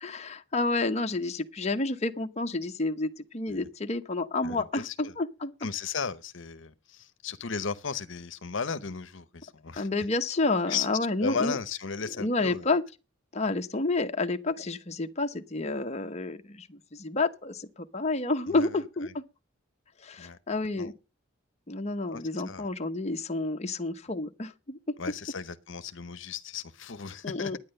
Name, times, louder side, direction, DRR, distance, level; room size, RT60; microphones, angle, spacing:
voice 1, 0.0-5.5 9.8-11.6 12.2-12.8 13.3-19.2 20.0-20.9 21.7-24.8 27.2-27.6, left 2 dB, 35° left, 0.8 m, -30 dB
voice 2, 4.4-5.1 5.6-9.9 10.7-10.9 11.2-12.7 18.5-19.1 20.2-20.4 20.8-20.9 22.1-22.7 25.0-27.5, left 6 dB, 65° left, 0.9 m, -35 dB
11.0 x 9.7 x 6.5 m
head